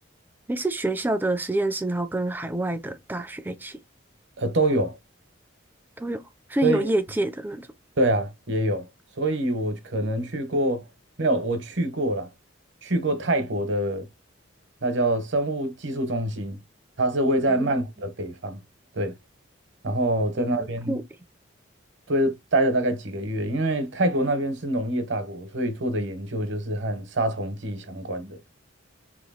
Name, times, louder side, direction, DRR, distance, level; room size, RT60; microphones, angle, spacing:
voice 1, 0.5-3.8 6.0-6.2 6.5-7.7 17.5-17.8 20.4-21.0, right 1 dB, 10° right, 0.4 m, -27 dB
voice 2, 4.4-5.0 6.6-6.9 8.0-8.9 9.2-10.8 11.2-12.3 12.8-14.1 14.8-16.6 17.0-18.6 18.9-19.1 19.8-21.0 22.1-28.4, right 1 dB, 60° right, 1.0 m, -25 dB
3.0 x 2.7 x 4.1 m
head